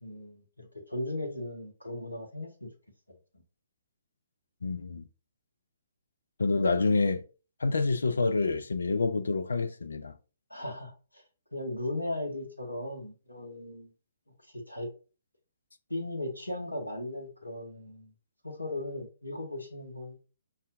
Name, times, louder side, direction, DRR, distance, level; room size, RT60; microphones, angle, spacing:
voice 1, 0.0-2.7 10.5-11.2 11.5-13.9 14.4-14.9 15.9-18.1 18.4-20.2, left 1 dB, 85° left, 0.8 m, -37 dB
voice 2, 4.6-5.0 6.4-7.2 7.6-10.1, left 3 dB, 65° left, 0.5 m, -27 dB
5.4 x 2.4 x 2.5 m
figure-of-eight pair, 130°, 0 cm